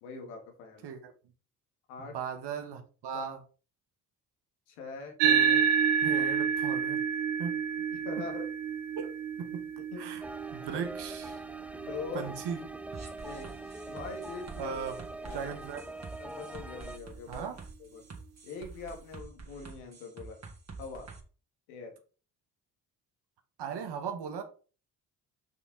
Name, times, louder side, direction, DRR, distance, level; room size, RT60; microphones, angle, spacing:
voice 1, 0.0-0.9 1.9-2.2 3.1-3.3 4.7-5.2 6.1-6.2 7.9-8.5 9.9-10.2 11.7-12.3 13.2-13.6 13.9-14.8 15.2-15.6 16.2-17.5 17.8-18.0 18.4-20.4 20.8-21.1 21.7-21.9, left 4 dB, 85° left, 1.8 m, -43 dB
voice 2, 2.0-3.4 5.2-5.6 6.0-7.0 7.4-7.6 8.9-9.1 9.4-9.7 10.0-10.2 10.5-11.4 12.1-12.6 14.6-15.8 17.3-17.6 23.6-24.4, right 6 dB, 65° right, 1.7 m, -38 dB
sound 1, 5.2-13.9, right 7 dB, 85° right, 0.8 m, -30 dB
sound 2, 10.2-17.0, right 2 dB, 5° right, 0.6 m, -43 dB
sound 3, 12.9-21.2, right 4 dB, 35° right, 2.6 m, -47 dB
6.3 x 6.2 x 3.9 m
hypercardioid pair, 45°, 44 cm